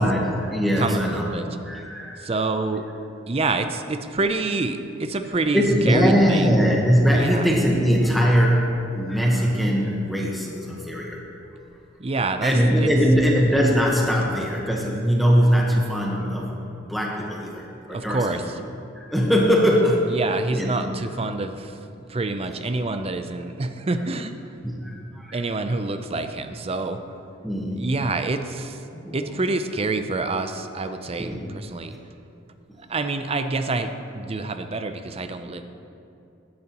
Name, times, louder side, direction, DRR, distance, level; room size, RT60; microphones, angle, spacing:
voice 1, 0.0-1.3 1.6-2.2 5.5-11.2 12.4-16.6 16.9-18.2 19.0-20.1 20.5-20.8 24.6-25.4 27.4-27.8 29.0-29.2 31.2-31.5, equal, ahead, -3 dB, 1.1 m, -21 dB
voice 2, 0.8-1.5 2.2-2.8 3.3-6.7 7.1-7.5 12.0-12.9 17.9-18.6 20.1-24.3 25.3-27.0 27.7-28.8 29.1-32.0 32.8-35.6, right 3 dB, 30° right, 8 dB, 0.5 m, -27 dB
15.0 x 10.5 x 3.0 m, 2.6 s
head